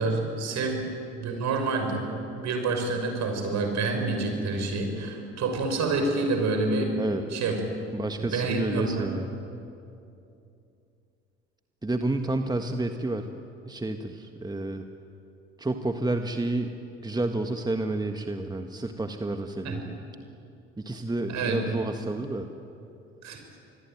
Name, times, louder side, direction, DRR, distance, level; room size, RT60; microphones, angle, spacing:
voice 1, 0.0-2.0 2.4-6.9 7.3-7.6 8.2-9.2 19.6-19.8 21.3-21.6 23.2-23.4, right 3 dB, 55° right, 4 dB, 6.2 m, -28 dB
voice 2, 7.9-9.3 11.8-13.3 13.7-14.8 15.6-16.7 17.0-20.0 20.8-22.4, right 2 dB, 10° right, 6 dB, 1.6 m, -30 dB
26.5 x 21.5 x 9.4 m, 2.6 s
hypercardioid pair, 60°, 34 cm